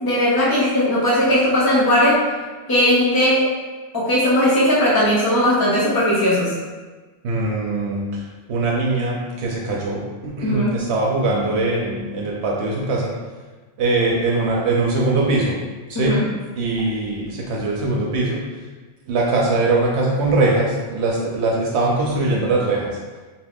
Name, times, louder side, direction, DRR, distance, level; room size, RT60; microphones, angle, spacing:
voice 1, 0.0-2.2 2.7-3.5 3.9-6.5 10.4-10.8 15.9-16.2, equal, 35° left, -7 dB, 0.3 m, -18 dB
voice 2, 7.2-8.1 8.5-13.1 13.8-15.6 15.9-16.2 16.6-18.4 19.1-22.9, right 2 dB, 80° right, -2 dB, 0.9 m, -21 dB
2.6 x 2.4 x 3.4 m, 1.3 s
omnidirectional pair, 1.1 m